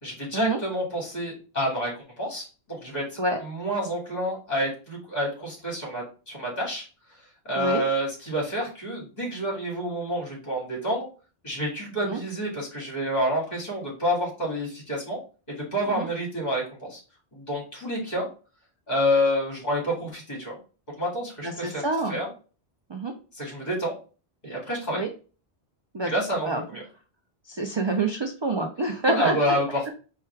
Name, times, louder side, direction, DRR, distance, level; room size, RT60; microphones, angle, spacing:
voice 1, 0.0-3.0 3.4-6.9 7.4-11.1 11.4-15.2 15.6-17.0 17.3-18.3 18.9-20.6 21.0-22.3 23.3-24.0 24.4-25.0 26.0-26.8 29.1-29.9, equal, 40° left, -3 dB, 2.2 m, -28 dB
voice 2, 21.4-22.2 22.9-23.1 24.9-25.1 25.9-26.1 26.5-26.6 27.5-29.6, right 2 dB, 45° right, 4 dB, 0.3 m, -27 dB
4.6 x 2.3 x 4.4 m, 0.36 s
omnidirectional pair, 1.1 m